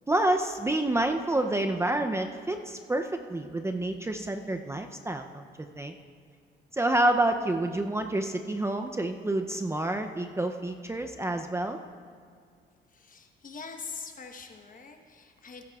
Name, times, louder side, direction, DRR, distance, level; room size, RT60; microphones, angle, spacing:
voice 1, 0.1-5.4 5.8-5.9 6.7-11.8, right 1 dB, 15° right, 5 dB, 0.5 m, -28 dB
voice 2, 12.9-15.6, left 5 dB, 45° left, 5 dB, 1.1 m, -43 dB
15.5 x 12.0 x 2.4 m, 2.2 s
cardioid pair, 90°, 20 cm